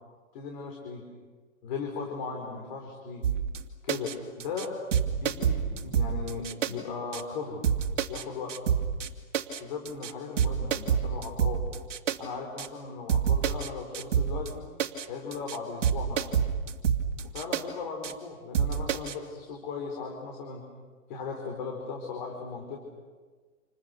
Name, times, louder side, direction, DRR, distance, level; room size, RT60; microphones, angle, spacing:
voice 1, 0.3-1.1 1.6-3.3 3.8-4.7 5.1-7.6 8.1-8.6 9.6-11.6 12.2-14.6 15.1-16.2 17.2-20.6 21.1-22.8, left 5 dB, 35° left, 1 dB, 4.2 m, -37 dB
sound 1, 3.2-3.6 3.9-4.1 4.4-4.7 4.9-6.7 7.1-7.2 7.6-8.2 8.5-9.1 9.3-9.6 9.9-10.1 10.4-12.2 12.6-12.7 13.1-13.7 13.9-14.5 14.8-15.1 15.3-15.6 15.8-17.6 18.0-18.1 18.5-19.1, right 8 dB, 60° right, 2.7 m, -27 dB
30.0 x 28.5 x 6.8 m, 1.5 s
hypercardioid pair, 170°, 40 cm